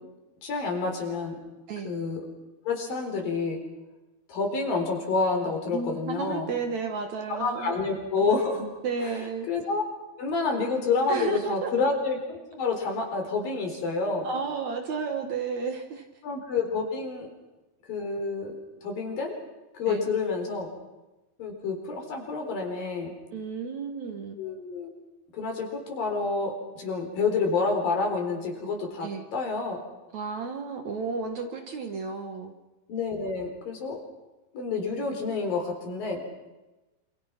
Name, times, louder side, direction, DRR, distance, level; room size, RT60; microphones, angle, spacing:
voice 1, 0.4-1.4 1.8-2.2 2.7-3.6 4.3-6.5 7.3-8.7 9.0-9.2 9.5-9.8 10.2-14.3 16.2-17.3 17.9-19.3 19.7-20.7 21.4-23.1 24.4-24.9 25.3-29.8 32.9-34.0 34.5-36.2, left 4 dB, 65° left, 3 dB, 6.0 m, -28 dB
voice 2, 5.7-7.8 8.8-9.5 11.1-11.7 13.7-13.8 14.2-16.0 19.9-20.1 23.3-24.4 29.0-29.3 30.1-32.5, right 5 dB, 55° right, 5 dB, 2.4 m, -32 dB
27.0 x 27.0 x 5.9 m, 1.1 s
omnidirectional pair, 4.4 m